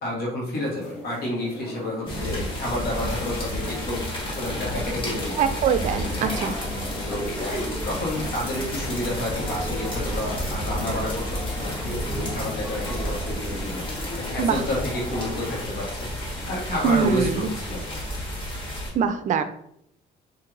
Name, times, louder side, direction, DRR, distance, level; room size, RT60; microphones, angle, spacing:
voice 1, 0.0-4.0 4.4-5.4 6.1-6.5 7.1-13.8 14.2-16.1 16.5-17.8, left 1 dB, 70° left, -3 dB, 1.3 m, -30 dB
sound 1, 0.5-15.6, left 2 dB, 90° left, 1.2 m, -38 dB
sound 2, 2.1-18.9, equal, 30° left, 1.4 m, -31 dB
voice 2, 5.4-6.6 14.4-14.6 16.8-17.5 18.9-19.4, right 7 dB, 50° right, 10 dB, 0.4 m, -23 dB
sound 3, 7.9-18.1, equal, 5° left, 1.4 m, -45 dB
4.5 x 2.6 x 2.5 m, 0.72 s
cardioid pair, 110°, 17 cm